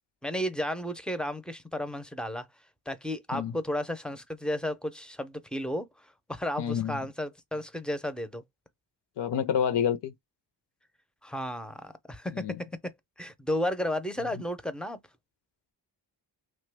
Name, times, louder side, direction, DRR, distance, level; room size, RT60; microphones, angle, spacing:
voice 1, 0.2-2.5 2.9-8.4 11.2-15.0, left 1 dB, ahead, 0.4 m, -33 dB
voice 2, 6.6-7.0 9.2-10.1 12.3-12.6, left 8 dB, 70° left, 0.6 m, -28 dB
3.0 x 2.2 x 3.2 m
wide cardioid pair, 105°, 43 cm